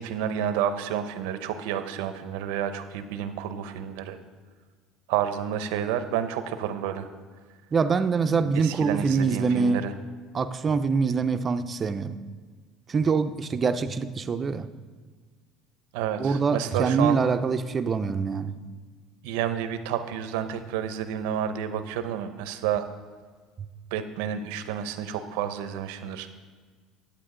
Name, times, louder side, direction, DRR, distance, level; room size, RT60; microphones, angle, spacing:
voice 1, 0.0-4.2 5.1-7.1 8.5-9.9 15.9-17.2 19.2-22.9 23.9-26.3, right 9 dB, 85° right, 10 dB, 0.7 m, -30 dB
voice 2, 7.7-9.8 10.3-12.2 12.9-14.7 16.2-18.5, right 5 dB, 30° right, 10 dB, 0.5 m, -24 dB
9.9 x 8.8 x 3.8 m, 1.5 s
cardioid pair, 115°, 0 cm